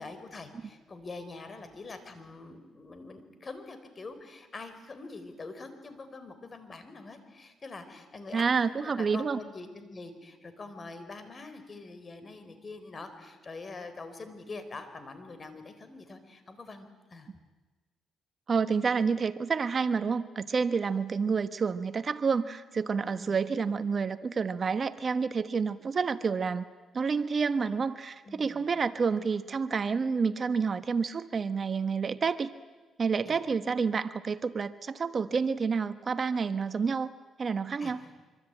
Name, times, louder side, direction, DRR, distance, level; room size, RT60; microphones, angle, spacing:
voice 1, 0.0-17.3 23.0-23.4 28.2-28.7 33.2-33.4 37.8-38.1, left 3 dB, 35° left, 10 dB, 4.2 m, -44 dB
voice 2, 8.3-9.4 18.5-26.6 26.9-32.5 33.0-38.0, right 5 dB, 40° right, 12 dB, 1.0 m, -29 dB
25.5 x 24.5 x 9.0 m, 1.3 s
cardioid pair, 90°, 0 cm